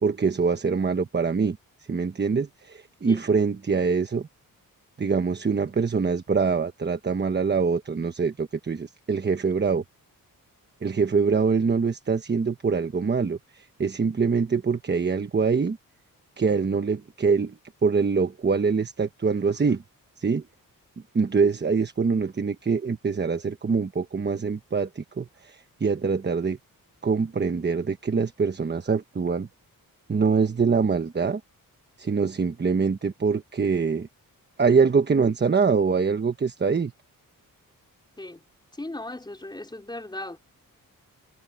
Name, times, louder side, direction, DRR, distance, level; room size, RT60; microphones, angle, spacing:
voice 1, 0.0-1.6 1.9-4.3 5.0-9.8 10.8-15.8 16.4-17.6 17.8-19.8 20.2-20.4 21.1-26.6 27.0-29.5 30.1-31.4 32.0-34.1 34.6-36.9, right 5 dB, 30° right, 1.1 m, -24 dB
voice 2, 38.8-40.4, left 2 dB, 10° left, 4.2 m, -37 dB
wide cardioid pair, 130°, 35 cm